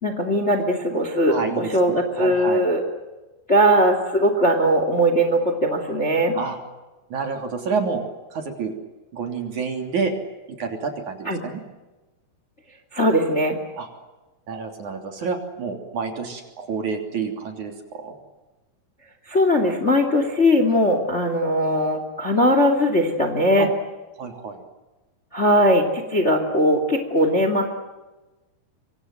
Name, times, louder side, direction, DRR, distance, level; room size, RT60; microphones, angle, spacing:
voice 1, 0.0-2.8 3.5-6.4 11.3-11.4 12.9-13.6 19.3-23.7 25.3-27.7, equal, 20° left, 7 dB, 2.1 m, -20 dB
voice 2, 1.3-2.7 6.3-6.6 7.1-8.0 8.3-8.8 9.1-10.1 10.5-11.6 13.8-13.9 14.5-18.2 23.6-23.7 24.2-24.6, right 5 dB, 45° right, 4 dB, 4.3 m, -29 dB
25.5 x 25.5 x 7.9 m, 1.1 s
omnidirectional pair, 4.9 m